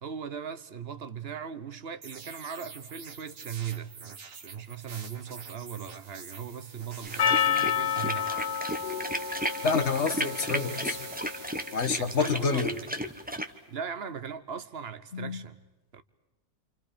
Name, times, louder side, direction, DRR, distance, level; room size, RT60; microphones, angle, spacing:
voice 1, 0.0-8.8 11.9-12.7 13.7-15.6 15.9-16.0, right 7 dB, 50° right, 1.2 m, -39 dB
sound 1, 2.0-13.4, right 5 dB, 70° right, 1.9 m, -46 dB
sound 2, 7.0-13.5, equal, 5° right, 1.0 m, -34 dB
Percussion, 7.2-11.7, left 8 dB, 85° left, 1.5 m, -30 dB
voice 2, 9.6-11.1 11.7-12.8 15.1-15.4, left 5 dB, 50° left, 1.7 m, -28 dB
28.5 x 27.5 x 5.1 m
omnidirectional pair, 1.5 m